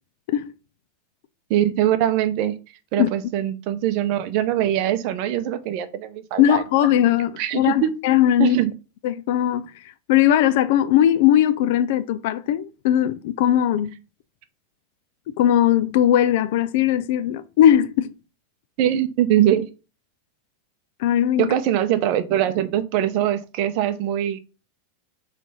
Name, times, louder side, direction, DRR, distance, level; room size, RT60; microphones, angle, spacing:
voice 1, 1.5-2.5 2.9-6.6 7.4-7.9 8.4-8.7 18.8-19.7 21.4-24.4, right 11 dB, 40° right, 0.8 m, -22 dB
voice 2, 6.4-8.6 9.0-13.9 15.4-18.1 21.0-21.5, left 11 dB, 55° left, 0.4 m, -19 dB
6.0 x 3.4 x 5.5 m
supercardioid pair, 170°, 0 cm